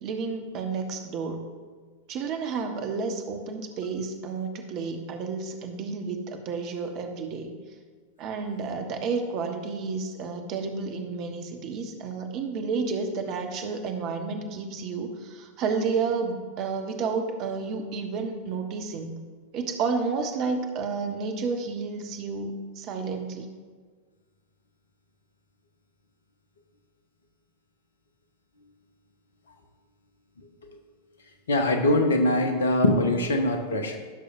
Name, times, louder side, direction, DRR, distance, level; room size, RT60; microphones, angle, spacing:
voice 1, 0.0-1.4 2.1-7.5 8.2-19.2 19.5-23.5, right 4 dB, 40° right, 5 dB, 1.1 m, -31 dB
voice 2, 31.5-34.0, left 1 dB, 65° left, 5 dB, 1.1 m, -22 dB
15.5 x 6.6 x 2.6 m, 1.5 s
figure-of-eight pair, 90°, 0 cm